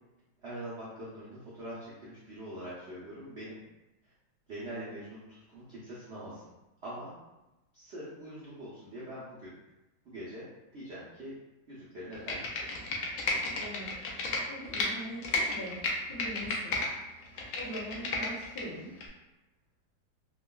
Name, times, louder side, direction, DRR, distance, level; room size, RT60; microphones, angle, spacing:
voice 1, 0.4-3.5 4.0-4.1 4.5-6.5 6.8-7.1 7.7-9.6 10.0-10.4 10.7-11.3 11.7-12.7, right 1 dB, 85° right, -8 dB, 0.5 m, -43 dB
Computer keyboard, 12.1-14.9 15.2-16.9 17.2-18.6 19.0-19.1, left 3 dB, 75° left, 0.8 m, -32 dB
voice 2, 13.5-14.0 14.5-15.8 16.1-16.8 17.1-18.9, equal, 60° left, -7 dB, 1.3 m, -42 dB
3.5 x 2.2 x 2.2 m, 1.0 s
omnidirectional pair, 2.0 m